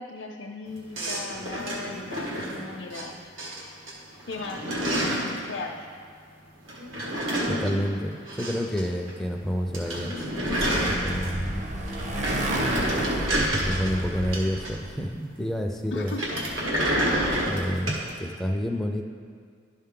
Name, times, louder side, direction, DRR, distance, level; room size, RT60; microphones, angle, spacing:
voice 1, 0.0-3.2 4.3-4.6 5.5-5.9 15.9-16.4 16.9-17.3, left 3 dB, 65° left, -1 dB, 0.5 m, -37 dB
sound 1, 0.9-3.0 3.4-3.9 4.2-5.4 6.7-8.8 9.1-9.2 9.5-9.6 9.7-11.5 11.9-15.0 16.0-18.1, right 1 dB, 85° right, 1.5 m, -29 dB
voice 2, 7.4-10.1 11.0-11.7 13.7-16.2 17.4-19.0, equal, ahead, 2 dB, 0.4 m, -29 dB
Motorcycle, 10.0-15.0, right 1 dB, 35° right, 0.6 m, -32 dB
11.5 x 5.6 x 3.7 m, 2.1 s
head